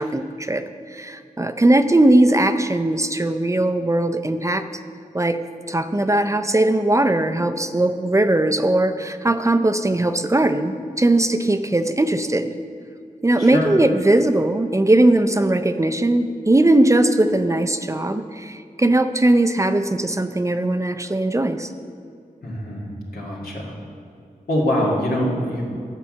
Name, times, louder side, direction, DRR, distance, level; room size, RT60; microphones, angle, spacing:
voice 1, 0.0-4.7 5.1-5.4 5.7-12.5 13.2-21.7, right 1 dB, 20° right, 9 dB, 0.5 m, -19 dB
voice 2, 13.4-13.7 22.4-23.8 24.5-25.6, left 1 dB, 90° left, -4 dB, 2.1 m, -24 dB
11.0 x 4.6 x 7.6 m, 2.4 s
wide cardioid pair, 80°, 15 cm